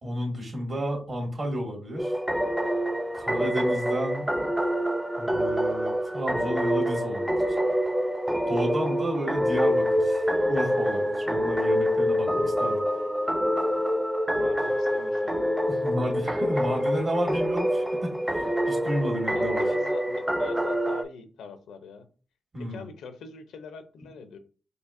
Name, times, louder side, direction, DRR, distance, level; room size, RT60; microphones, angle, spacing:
voice 1, 0.0-2.1 3.1-4.3 5.2-7.3 8.5-12.8 15.7-19.6 22.5-22.8, equal, 50° right, -1 dB, 1.7 m, -31 dB
sound 1, 2.0-21.0, equal, 10° right, 0.5 m, -26 dB
voice 2, 14.3-15.5 19.3-22.1 22.6-24.4, left 5 dB, 80° left, 10 dB, 0.5 m, -42 dB
4.3 x 2.7 x 2.4 m, 0.37 s
supercardioid pair, 50°, 0 cm